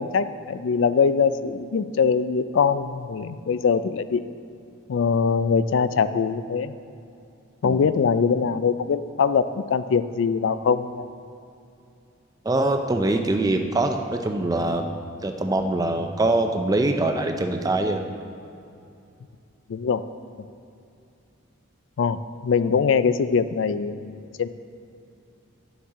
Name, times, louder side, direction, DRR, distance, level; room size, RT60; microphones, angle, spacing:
voice 1, 0.0-4.2 4.9-6.7 7.6-11.1 19.7-20.0 22.0-24.5, left 6 dB, 65° left, 13 dB, 0.3 m, -22 dB
voice 2, 12.4-14.9 15.2-18.0, right 2 dB, 20° right, 5 dB, 0.4 m, -23 dB
11.0 x 7.1 x 3.6 m, 2.6 s
head